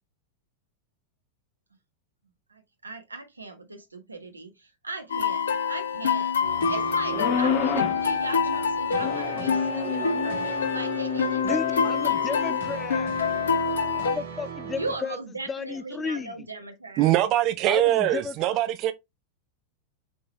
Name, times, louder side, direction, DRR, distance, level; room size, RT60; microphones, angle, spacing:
voice 1, 2.5-6.3 6.7-12.4 14.8-17.1 18.0-18.1, right 2 dB, 80° right, 1.4 m, -38 dB
sound 1, 5.1-14.2, left 6 dB, 65° left, 0.8 m, -26 dB
sound 2, 6.4-15.0, right 8 dB, 65° right, 2.3 m, -39 dB
sound 3, 7.1-8.0 9.0-12.6, left 8 dB, 40° left, 1.0 m, -30 dB
voice 2, 11.4-13.1 14.0-15.2 15.5-16.5 17.6-18.4, left 5 dB, 15° left, 0.4 m, -33 dB
voice 3, 17.0-18.9, right 14 dB, 40° right, 0.7 m, -22 dB
7.6 x 3.9 x 3.2 m
figure-of-eight pair, 90°, 0 cm